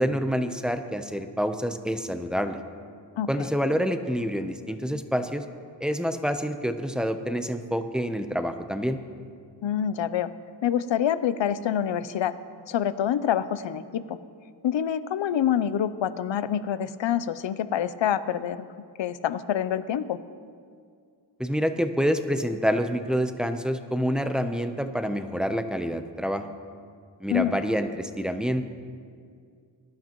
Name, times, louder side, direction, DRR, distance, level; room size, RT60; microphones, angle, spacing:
voice 1, 0.0-2.6 3.3-5.4 5.8-9.0 21.4-26.5 27.2-28.6, equal, ahead, 7 dB, 0.7 m, -27 dB
voice 2, 3.2-3.5 9.6-10.3 10.6-12.3 12.7-14.2 14.6-18.7 19.0-20.2 27.3-27.6, left 9 dB, 80° left, 14 dB, 0.6 m, -26 dB
21.0 x 12.0 x 3.0 m, 2.2 s
wide cardioid pair, 105°, 44 cm